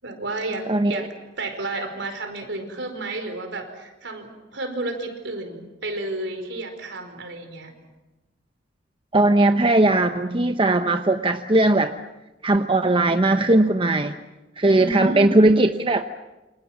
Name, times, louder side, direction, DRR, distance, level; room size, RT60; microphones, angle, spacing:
voice 1, 0.0-7.7 14.8-15.4, right 2 dB, 65° right, 6 dB, 4.9 m, -31 dB
voice 2, 9.1-11.9 12.4-14.1 14.6-16.0, right 2 dB, 30° right, 8 dB, 0.9 m, -18 dB
29.0 x 26.5 x 7.4 m, 1.1 s
head